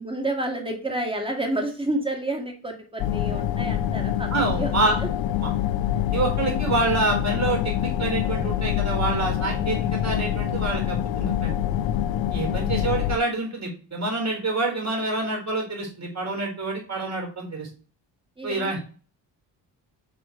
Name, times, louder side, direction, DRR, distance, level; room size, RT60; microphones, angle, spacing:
voice 1, 0.0-5.1 12.4-12.8 18.4-18.8, right 1 dB, 10° right, 3 dB, 2.2 m, -30 dB
sound 1, 3.0-13.2, left 11 dB, 65° left, 0.6 m, -25 dB
voice 2, 4.3-5.0 5.4-5.5 6.1-11.5 12.3-17.7 18.4-18.8, right 2 dB, 30° right, 1 dB, 3.8 m, -27 dB
5.4 x 4.4 x 4.6 m, 0.38 s
supercardioid pair, 45°, 50 cm